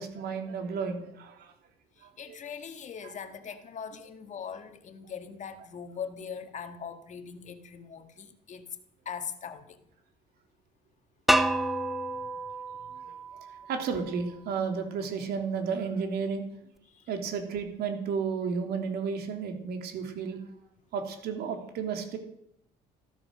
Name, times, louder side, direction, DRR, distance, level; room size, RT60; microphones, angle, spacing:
voice 1, 0.0-1.5 2.0-2.4 3.0-3.1 13.7-16.4 17.1-20.4 20.9-22.2, right 5 dB, 70° right, 4 dB, 3.3 m, -32 dB
voice 2, 2.0-8.8 9.1-9.8 12.2-12.4 16.9-17.1, left 7 dB, 45° left, 7 dB, 1.9 m, -41 dB
sound 1, 11.3-14.2, right 1 dB, ahead, 0.9 m, -29 dB
14.5 x 13.5 x 6.4 m, 0.74 s
cardioid pair, 110°, 17 cm